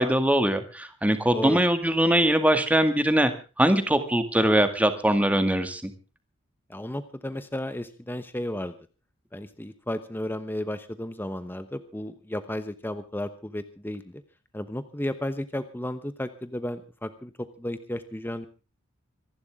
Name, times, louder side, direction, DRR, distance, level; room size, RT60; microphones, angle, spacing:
voice 1, 0.0-3.3 3.6-5.9, right 1 dB, 5° right, 8 dB, 2.1 m, -22 dB
voice 2, 6.7-8.8 9.3-14.2 14.5-18.5, left 1 dB, 10° left, 11 dB, 1.0 m, -33 dB
26.5 x 11.5 x 3.6 m, 0.33 s
head